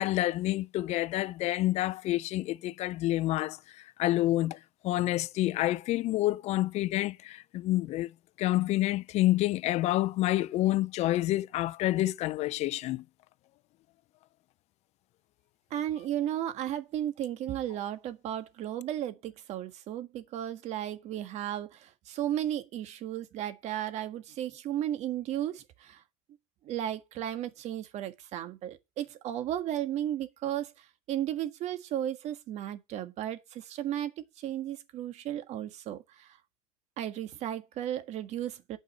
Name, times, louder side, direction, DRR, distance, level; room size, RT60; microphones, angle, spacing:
voice 1, 0.0-8.1 8.4-13.0, left 16 dB, 50° left, 0.6 m, -28 dB
voice 2, 15.7-26.0 26.6-36.4 37.0-38.8, right 11 dB, 50° right, 1.6 m, -34 dB
9.2 x 5.4 x 7.6 m
supercardioid pair, 105°, 14 cm